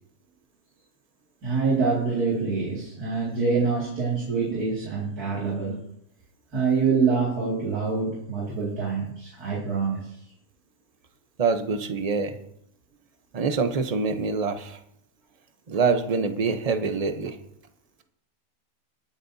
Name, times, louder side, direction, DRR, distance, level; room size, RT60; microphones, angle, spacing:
voice 1, 1.4-5.8 6.5-10.2, right 4 dB, 80° right, -4 dB, 2.9 m, -25 dB
voice 2, 11.4-12.4 13.3-14.8 15.7-17.4, right 4 dB, 30° right, 7 dB, 0.8 m, -25 dB
21.0 x 8.5 x 2.7 m, 0.75 s
omnidirectional pair, 1.6 m